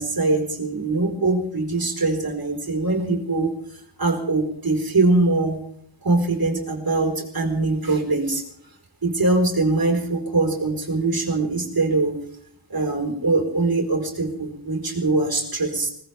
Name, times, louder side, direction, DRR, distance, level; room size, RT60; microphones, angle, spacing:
voice 1, 0.0-3.5 4.0-5.6 6.0-8.4 9.0-12.2 12.7-15.9, right 2 dB, 55° right, 1 dB, 4.4 m, -22 dB
21.5 x 19.0 x 3.5 m, 0.66 s
wide cardioid pair, 55°, 41 cm